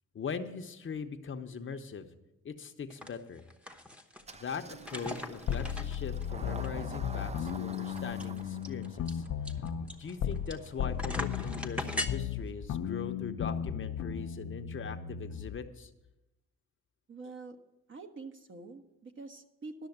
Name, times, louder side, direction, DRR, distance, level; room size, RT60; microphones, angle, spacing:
voice 1, 0.1-2.1 2.4-3.4 4.3-9.2 10.0-15.9 17.2-17.3, left 6 dB, 40° left, 7 dB, 0.9 m, -41 dB
sound 1, 2.9-3.1 3.4-4.3 4.8-6.2 6.6-6.7 6.9-7.0 7.5-10.7 11.0-12.1, left 1 dB, 5° right, 1.0 m, -39 dB
Engine starting, 4.2-11.6, right 4 dB, 20° right, 0.5 m, -49 dB
sound 2, 5.5-10.5 10.8-15.6, left 8 dB, 65° left, 0.7 m, -35 dB
voice 2, 17.1-17.6 17.9-19.9, right 3 dB, 40° right, 6 dB, 1.2 m, -46 dB
12.0 x 6.4 x 7.9 m, 0.95 s
cardioid pair, 90°, 30 cm